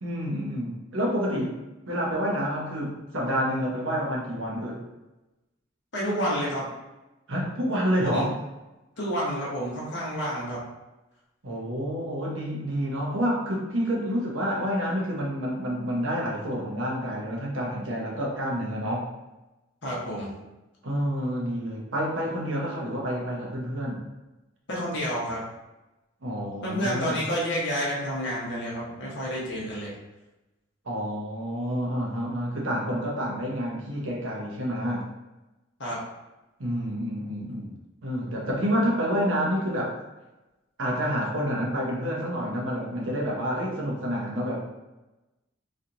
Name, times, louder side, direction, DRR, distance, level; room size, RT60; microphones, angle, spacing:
voice 1, 0.0-1.5 1.9-4.8 7.3-8.3 11.4-19.1 20.8-24.0 26.2-27.2 30.8-35.0 36.6-37.7 38.0-39.9 40.8-44.7, equal, 65° right, -3 dB, 0.9 m, -28 dB
voice 2, 5.9-6.6 8.0-8.2 9.0-10.6 19.8-20.3 24.7-25.4 26.6-29.9 35.8-36.0, equal, 55° left, -6 dB, 1.0 m, -29 dB
3.2 x 2.8 x 2.6 m, 1.0 s
head